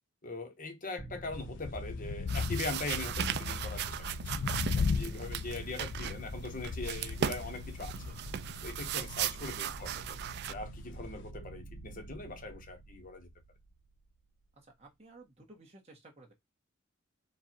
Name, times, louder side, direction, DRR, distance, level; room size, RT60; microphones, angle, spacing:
voice 1, 0.2-3.9 4.2-4.3 4.7-7.9 8.6-13.3, left 2 dB, 40° left, 1.1 m, -41 dB
sound 1, 1.0-14.3, right 2 dB, ahead, 1.5 m, -48 dB
sound 2, 1.3-11.3, left 5 dB, 55° left, 0.4 m, -37 dB
sound 3, 2.3-10.5, right 10 dB, 50° right, 0.3 m, -38 dB
voice 2, 5.2-5.5 9.3-9.4 14.6-16.3, right 2 dB, 30° right, 1.5 m, -56 dB
4.6 x 2.5 x 4.3 m
head